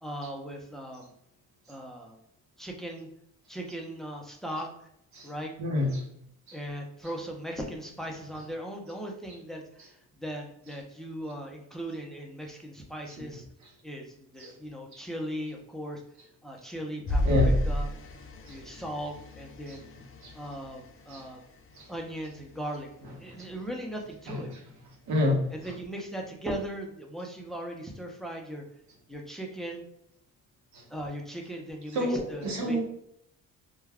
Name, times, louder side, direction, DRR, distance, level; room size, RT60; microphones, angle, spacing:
voice 1, 0.0-1.1 1.7-2.2 2.6-3.1 3.5-4.9 5.2-5.5 6.5-13.4 13.8-16.0 16.4-17.9 18.4-19.8 20.3-21.4 21.9-24.5 25.5-28.6 29.1-29.8 30.9-32.8, right 1 dB, ahead, 1 dB, 0.6 m, -38 dB
voice 2, 5.6-6.0 6.5-6.6 14.4-14.5 17.2-17.5 18.5-18.6 20.2-20.3 21.1-21.2 21.8-21.9 24.3-24.4 25.1-25.4 30.7-30.8 31.9-32.8, left 1 dB, 65° right, -1 dB, 0.9 m, -27 dB
sound 1, 17.1-21.7 22.3-22.6 22.9-23.0, left 1 dB, 45° left, 0.5 m, -31 dB
2.3 x 2.3 x 3.3 m, 0.75 s
cardioid pair, 90°, 30 cm